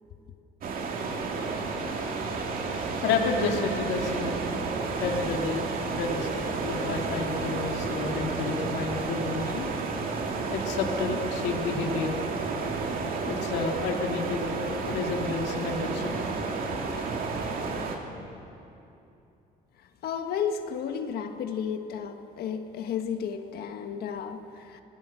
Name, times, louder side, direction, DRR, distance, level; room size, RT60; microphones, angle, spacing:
sound 1, 0.6-18.0, right 4 dB, 55° right, 2.5 m, -31 dB
voice 1, 1.5-4.4 5.0-5.7 5.9-9.7 10.5-12.2 13.2-16.5, left 4 dB, 85° left, 1 dB, 2.6 m, -31 dB
voice 2, 20.0-24.8, left 7 dB, 65° left, 6 dB, 1.4 m, -33 dB
28.0 x 18.0 x 6.4 m, 2.8 s
cardioid pair, 110°, 17 cm